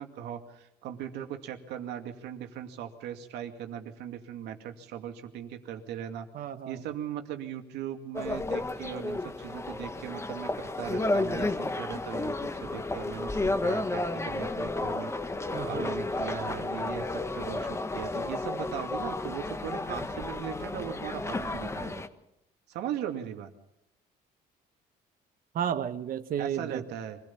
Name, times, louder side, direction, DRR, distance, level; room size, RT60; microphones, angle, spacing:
voice 1, 0.0-6.3 6.7-12.3 12.6-15.1 15.6-22.0 22.7-23.5 26.4-27.2, right 10 dB, 85° right, 5 dB, 2.4 m, -39 dB
voice 2, 6.3-6.8 15.5-15.9 25.5-26.8, right 9 dB, 55° right, 11 dB, 1.3 m, -32 dB
sound 1, 8.1-22.1, left 2 dB, 15° left, 1.4 m, -32 dB
25.0 x 16.5 x 7.2 m, 0.84 s
cardioid pair, 110°, 17 cm